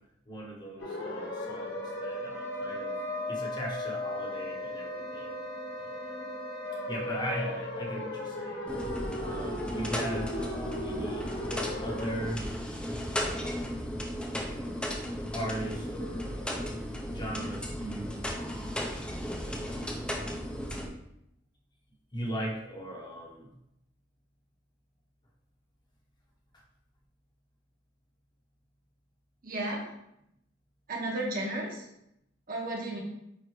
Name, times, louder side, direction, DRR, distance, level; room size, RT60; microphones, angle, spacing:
voice 1, 0.3-3.0 3.3-5.3 5.8-6.2 6.9-8.7 9.2-11.4 11.8-12.4 13.2-13.9 15.3-16.8 17.1-18.3 19.4-19.9 22.1-23.5, right 1 dB, 25° left, -2 dB, 1.1 m, -39 dB
sound 1, 0.8-12.1, left 1 dB, 85° left, 2.4 m, -36 dB
sound 2, 8.7-20.9, equal, 5° left, 0.7 m, -35 dB
voice 2, 29.4-29.9 30.9-31.8 32.5-33.0, right 1 dB, 50° right, -1 dB, 1.6 m, -33 dB
9.0 x 3.6 x 3.2 m, 0.80 s
head